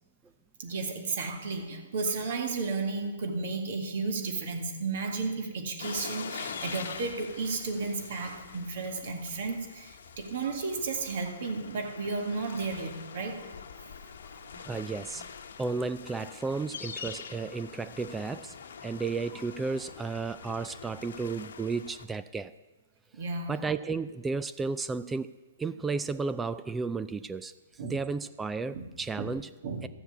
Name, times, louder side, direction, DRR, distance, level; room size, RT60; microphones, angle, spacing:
voice 1, 0.6-13.6 14.0-14.6 23.1-23.5 27.8-27.9 28.7-28.8 29.2-29.3 29.6-29.9, right 4 dB, 60° right, 3 dB, 2.4 m, -33 dB
sound 1, 5.8-22.0, left 6 dB, 75° left, 1.1 m, -44 dB
voice 2, 14.7-15.3 15.6-18.6 18.8-22.5 23.5-25.3 25.6-27.5 27.8-29.5 29.8-29.9, right 4 dB, 10° right, 14 dB, 0.4 m, -33 dB
13.0 x 7.1 x 8.3 m, 1.1 s
hypercardioid pair, 140°, 0 cm